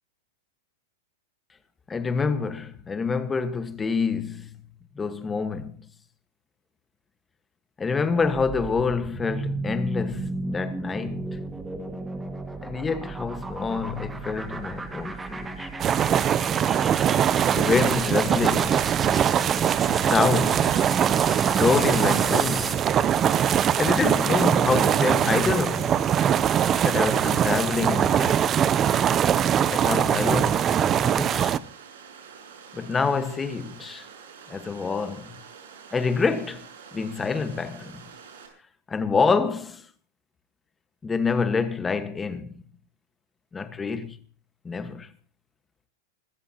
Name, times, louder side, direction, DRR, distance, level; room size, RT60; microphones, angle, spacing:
voice 1, 1.9-4.6 4.9-5.8 7.8-11.4 12.6-15.7 17.5-18.8 19.9-20.8 21.6-22.8 23.7-26.0 26.8-28.6 29.7-31.5 32.7-34.1 34.5-35.3 35.9-36.6 36.9-38.0 38.9-39.8 41.0-42.6 43.5-44.2 44.6-45.1, left 5 dB, 15° left, 1.5 m, -27 dB
sound 1, 8.2-22.9, right 2 dB, 10° right, 1.9 m, -34 dB
sound 2, 15.8-31.6, right 9 dB, 25° right, 0.6 m, -22 dB
Water, 18.5-38.5, right 6 dB, 80° right, 6.5 m, -47 dB
25.5 x 14.5 x 2.9 m
hypercardioid pair, 130°, 0 cm